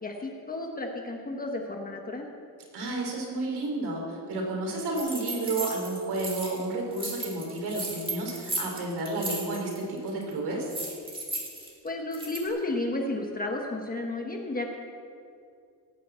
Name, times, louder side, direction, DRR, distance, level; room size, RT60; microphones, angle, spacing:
voice 1, 0.0-2.3 11.8-14.8, left 2 dB, 20° left, 1 dB, 1.2 m, -32 dB
voice 2, 2.7-10.7, right 2 dB, 75° right, 0 dB, 4.0 m, -31 dB
sound 1, 4.9-6.6 6.9-9.8 10.1-10.3 10.7-12.5, right 2 dB, 15° right, 2.3 m, -36 dB
17.5 x 6.8 x 8.2 m, 2.3 s
cardioid pair, 170°, 40 cm